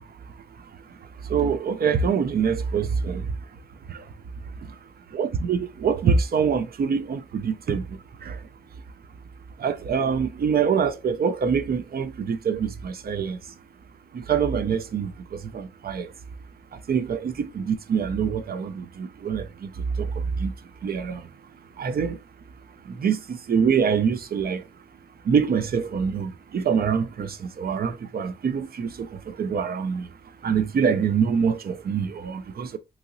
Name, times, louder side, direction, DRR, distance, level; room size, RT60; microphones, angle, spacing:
voice 1, 1.3-3.3 3.9-4.0 5.1-7.8 8.2-8.4 9.6-13.4 14.1-16.1 16.9-19.7 20.0-20.5 20.8-21.2 21.8-22.2 23.0-24.6 25.3-30.1 30.4-32.8, right 6 dB, 65° right, 0.4 m, -25 dB
3.0 x 2.7 x 2.5 m
wide cardioid pair, 100°, 17 cm